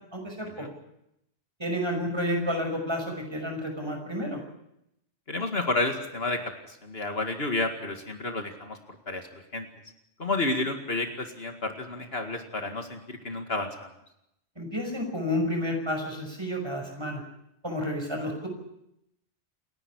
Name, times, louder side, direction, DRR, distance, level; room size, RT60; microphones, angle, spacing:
voice 1, 0.1-0.7 1.6-4.4 14.6-17.2 17.6-18.5, left 1 dB, 25° right, 2 dB, 6.0 m, -30 dB
voice 2, 5.3-6.4 6.7-8.8 9.1-9.3 9.5-9.7 10.2-13.9 18.2-18.3, left 2 dB, 65° left, 5 dB, 2.3 m, -30 dB
28.5 x 11.0 x 9.9 m, 0.81 s
omnidirectional pair, 1.1 m